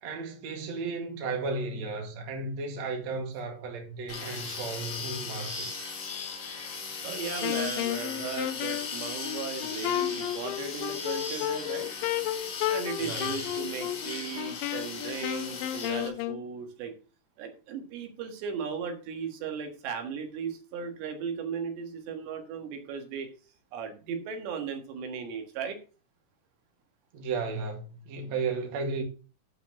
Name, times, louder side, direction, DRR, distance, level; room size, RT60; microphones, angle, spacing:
voice 1, 0.0-6.0 13.0-13.3 27.1-29.0, right 4 dB, 50° right, 2.7 m, -34 dB
sound 1, 4.1-16.1, left 5 dB, 55° left, 3.7 m, -38 dB
voice 2, 7.0-11.9 12.7-16.9 17.4-23.3 23.7-25.8, right 6 dB, 85° right, 3.8 m, -36 dB
Wind instrument woodwind instrument, 7.4-16.4, left 13 dB, 85° left, 2.0 m, -33 dB
11.5 x 4.4 x 5.8 m
omnidirectional pair, 4.8 m